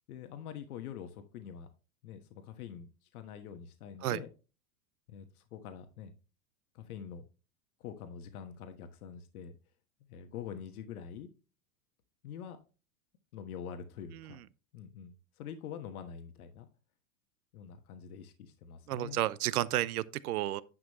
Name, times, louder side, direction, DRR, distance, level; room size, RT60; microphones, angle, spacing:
voice 1, 0.1-1.7 2.0-4.3 5.1-6.1 6.7-7.3 7.8-9.5 10.1-11.3 12.2-12.6 13.3-14.4 14.7-16.7 17.5-19.2, left 8 dB, 80° left, 1.4 m, -45 dB
voice 2, 18.9-20.6, right 14 dB, 90° right, 0.8 m, -32 dB
10.5 x 6.1 x 3.0 m
supercardioid pair, 140°, 44 cm